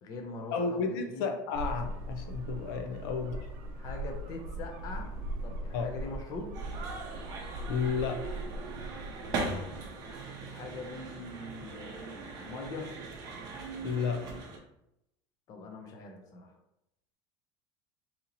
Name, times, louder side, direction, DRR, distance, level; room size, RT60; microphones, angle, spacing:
voice 1, 0.0-1.3 3.7-5.1 5.4-6.5 10.4-12.9 15.5-16.5, left 3 dB, 30° left, 3 dB, 0.5 m, -42 dB
voice 2, 0.5-3.5 5.7-5.9 7.7-8.4 13.8-14.4, left 5 dB, 80° left, 5 dB, 0.5 m, -32 dB
sound 1, 1.5-10.2, right 1 dB, 75° right, 0.5 m, -40 dB
sound 2, 6.5-14.6, right 3 dB, 35° right, 0.6 m, -40 dB
2.8 x 2.7 x 3.8 m, 0.85 s
cardioid pair, 175°, 12 cm